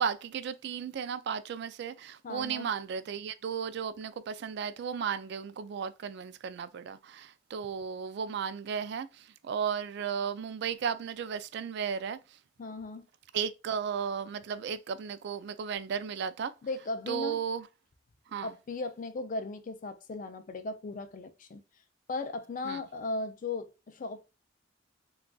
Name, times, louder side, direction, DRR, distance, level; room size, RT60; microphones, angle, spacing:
voice 1, 0.0-12.2 13.3-16.5 17.1-17.7 18.3-18.6 22.6-22.8, right 7 dB, 60° right, 0.3 m, -34 dB
voice 2, 2.2-2.7 12.6-13.1 16.6-17.4 18.4-21.6 22.1-24.2, left 3 dB, 45° left, 0.4 m, -37 dB
3.8 x 2.3 x 2.3 m
head